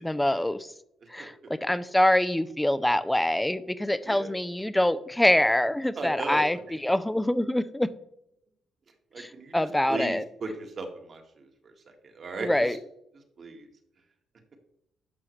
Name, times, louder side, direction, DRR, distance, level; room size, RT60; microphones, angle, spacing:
voice 1, 0.0-0.7 1.1-7.9 9.2-10.2 12.4-12.8, left 1 dB, 5° left, 14 dB, 0.5 m, -25 dB
voice 2, 1.2-1.5 4.0-4.3 5.9-6.6 9.1-9.5 9.9-10.5 10.8-11.2 12.0-12.7 13.4-13.7, right 3 dB, 50° right, 4 dB, 1.7 m, -36 dB
11.0 x 5.7 x 3.2 m, 0.78 s
cardioid pair, 90°, 0 cm